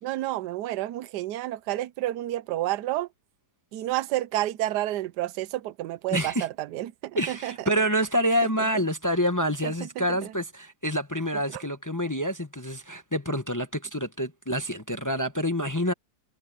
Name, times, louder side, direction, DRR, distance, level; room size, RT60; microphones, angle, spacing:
voice 1, 0.0-3.1 3.7-7.7 8.4-8.5 8.7-8.8 9.6-10.4 11.5-11.6, right 15 dB, 75° right, 1.2 m, -30 dB
voice 2, 6.1-6.5 7.2-15.9, equal, 15° left, 0.7 m, -27 dB
omnidirectional pair, 1.9 m